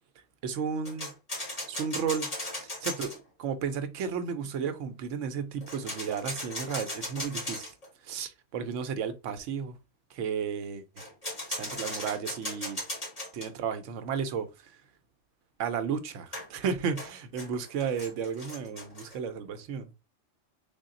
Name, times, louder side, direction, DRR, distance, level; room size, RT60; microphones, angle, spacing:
voice 1, 0.4-1.1 1.7-2.3 2.6-3.1 3.4-7.7 8.0-9.8 10.1-10.8 11.5-12.8 13.3-14.7 15.6-19.9, right 6 dB, 90° right, 1.0 m, -33 dB
sound 1, 0.9-3.2 5.6-7.9 11.0-13.5 16.3-19.2, left 1 dB, 30° left, 1.8 m, -37 dB
3.6 x 2.3 x 3.7 m
omnidirectional pair, 1.2 m